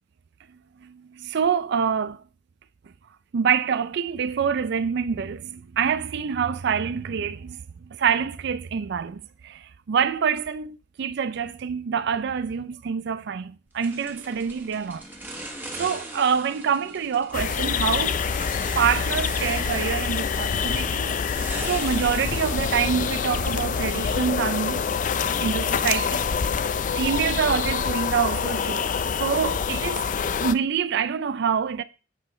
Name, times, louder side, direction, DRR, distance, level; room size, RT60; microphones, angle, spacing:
voice 1, 0.8-2.2 3.3-15.0 15.8-18.2 18.8-24.8 25.4-26.2 26.9-30.1 30.4-31.8, right 7 dB, 60° right, 0.4 m, -26 dB
sound 1, 13.8-23.9, right 1 dB, 10° right, 1.5 m, -41 dB
sound 2, 17.3-30.6, left 6 dB, 40° left, 0.4 m, -26 dB
8.2 x 5.6 x 4.3 m
head